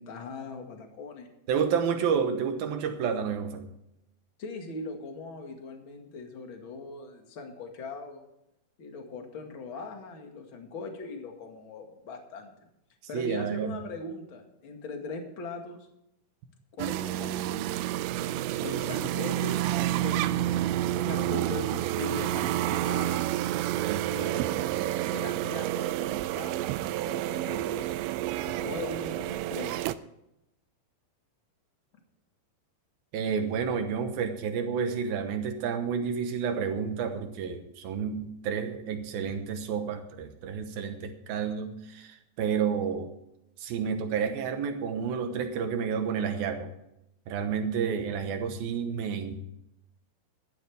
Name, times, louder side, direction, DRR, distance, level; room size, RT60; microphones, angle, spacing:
voice 1, 0.0-1.3 4.4-8.3 8.8-12.5 13.1-15.9 16.7-17.8 18.6-20.5 20.8-23.3 24.1-24.7 25.1-26.7 27.0-27.9 28.4-29.8, left 3 dB, 45° left, 3 dB, 1.7 m, -40 dB
voice 2, 1.5-3.7 13.1-13.8 23.9-24.1 33.1-43.1 43.6-46.7 47.3-49.4, right 6 dB, 70° right, 7 dB, 2.6 m, -30 dB
sound 1, 16.8-30.0, right 14 dB, 90° right, 2.9 m, -29 dB
16.0 x 12.5 x 3.5 m, 0.84 s
omnidirectional pair, 5.1 m